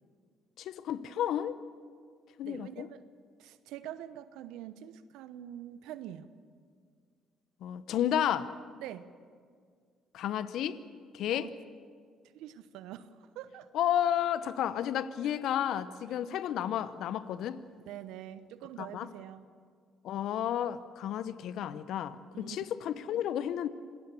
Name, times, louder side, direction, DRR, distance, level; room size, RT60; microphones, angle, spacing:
voice 1, 0.6-1.5 2.4-2.9 7.6-8.5 10.1-10.8 11.1-11.5 13.7-17.6 18.8-19.1 20.0-23.7, left 10 dB, 70° left, 15 dB, 0.9 m, -32 dB
voice 2, 2.4-3.1 3.4-6.3 8.8-9.1 11.3-11.5 12.3-13.7 16.1-16.2 17.9-19.5 22.3-22.6, right 11 dB, 75° right, 14 dB, 1.0 m, -45 dB
26.5 x 18.5 x 7.2 m, 2.1 s
hypercardioid pair, 55°, 0 cm